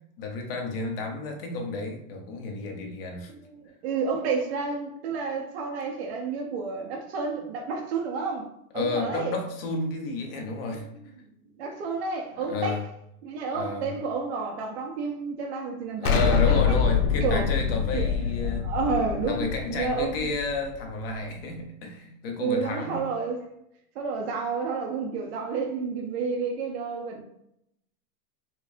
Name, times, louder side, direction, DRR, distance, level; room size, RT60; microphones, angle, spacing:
voice 1, 0.2-3.3 8.7-10.9 12.5-12.8 13.5-13.9 16.0-18.7 19.3-23.0, left 3 dB, 40° left, 0.6 m, -31 dB
voice 2, 3.3-8.5 8.7-9.4 11.6-12.9 13.2-16.4 16.7-16.8 17.2-17.5 17.9-20.3 22.4-23.5 24.0-27.2, right 4 dB, 45° right, 0.5 m, -30 dB
Explosion, 16.0-20.9, left 6 dB, 90° left, 0.7 m, -25 dB
4.3 x 2.0 x 2.5 m
supercardioid pair, 160°, 45 cm